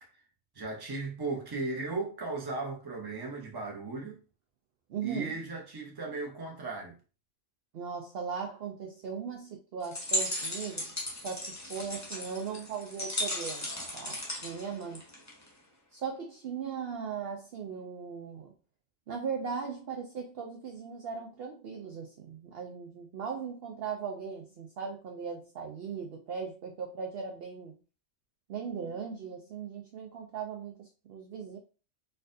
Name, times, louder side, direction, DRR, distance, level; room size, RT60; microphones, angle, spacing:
voice 1, 0.5-4.2 5.0-7.0, right 3 dB, 20° right, 0.7 m, -36 dB
voice 2, 4.9-5.4 7.7-10.9 11.2-15.0 15.9-18.5 19.1-27.8 28.5-31.6, right 6 dB, 60° right, 0.7 m, -38 dB
sound 1, 9.8-15.5, left 1 dB, 15° left, 0.7 m, -36 dB
4.3 x 2.5 x 2.6 m
omnidirectional pair, 1.3 m